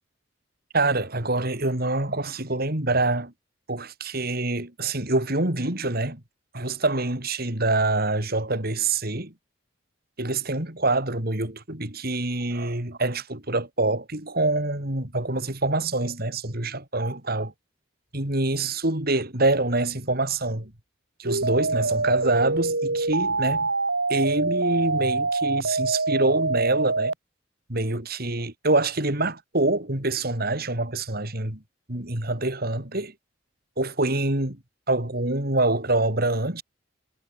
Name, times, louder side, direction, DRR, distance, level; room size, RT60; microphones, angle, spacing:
voice 1, 0.7-3.3 3.7-6.2 6.5-9.3 10.2-17.5 18.1-20.7 21.2-23.7 24.1-27.1 27.7-31.6 31.9-33.1 33.8-34.6 34.9-36.6, right 2 dB, 55° right, 4.1 m, -25 dB
sound 1, 21.2-27.1, right 3 dB, 90° right, 5.8 m, -25 dB
head